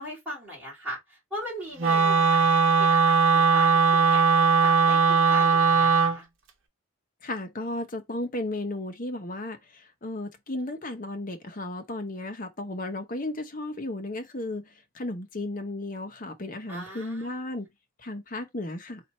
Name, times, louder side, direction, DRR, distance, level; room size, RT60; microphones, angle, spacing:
voice 1, 0.0-6.3 16.7-17.7, equal, 5° right, 2.9 m, -39 dB
Wind instrument woodwind instrument, 1.8-6.2, right 5 dB, 65° right, 1.0 m, -20 dB
voice 2, 7.2-9.6 10.0-14.6 14.9-17.7 18.0-19.0, left 1 dB, 40° left, 0.9 m, -34 dB
4.2 x 2.6 x 4.3 m
head